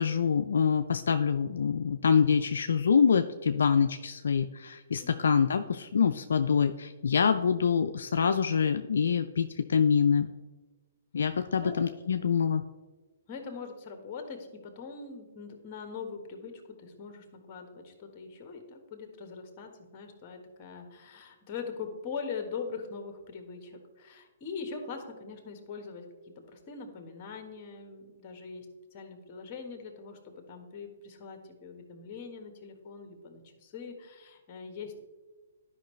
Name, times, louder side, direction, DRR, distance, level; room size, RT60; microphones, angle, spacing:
voice 1, 0.0-10.3 11.1-12.6, left 6 dB, 75° left, 8 dB, 0.4 m, -25 dB
voice 2, 5.0-5.4 11.2-11.9 13.3-26.0 26.5-28.7 28.9-35.0, left 5 dB, 35° left, 5 dB, 1.4 m, -42 dB
11.5 x 5.4 x 3.2 m, 1.3 s
hypercardioid pair, 135°, 0 cm